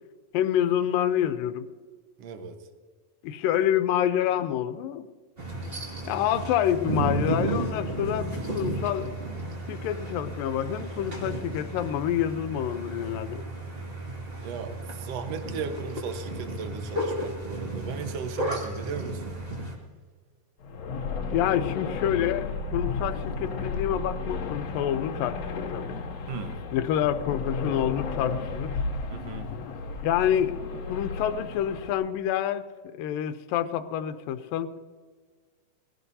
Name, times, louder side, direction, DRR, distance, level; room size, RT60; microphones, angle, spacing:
voice 1, 0.3-1.6 3.2-5.1 6.0-9.1 9.7-13.4 21.3-26.0 26.7-28.7 30.0-30.6 30.9-32.7 33.0-34.7, left 10 dB, 85° left, 10 dB, 2.5 m, -27 dB
voice 2, 2.2-2.6 14.4-19.4 26.3-26.6 29.1-29.5, right 5 dB, 60° right, 6 dB, 2.1 m, -36 dB
sound 1, 5.4-19.8, right 1 dB, 20° right, 2.0 m, -33 dB
sound 2, 20.6-31.9, left 4 dB, 55° left, 2.3 m, -33 dB
20.5 x 16.5 x 2.8 m, 1.5 s
omnidirectional pair, 3.9 m